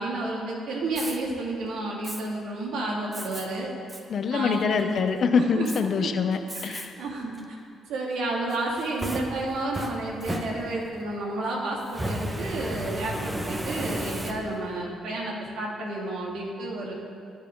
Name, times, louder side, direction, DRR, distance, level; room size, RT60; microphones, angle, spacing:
voice 1, 0.0-3.7 4.3-4.9 5.4-5.7 6.0-6.1 6.5-7.6 7.9-16.9, right 2 dB, 80° right, -2 dB, 2.5 m, -31 dB
Fire, 0.9-1.2 2.0-2.2 3.1-3.5 3.9-4.0 4.5-5.0 5.7-5.8 6.5-6.9 7.3-7.4 8.5-11.0 11.9-14.7, right 1 dB, 15° right, 1.2 m, -34 dB
voice 2, 4.1-6.9, left 5 dB, 55° left, 8 dB, 0.8 m, -25 dB
21.0 x 7.5 x 3.9 m, 2.4 s
cardioid pair, 90°, 0 cm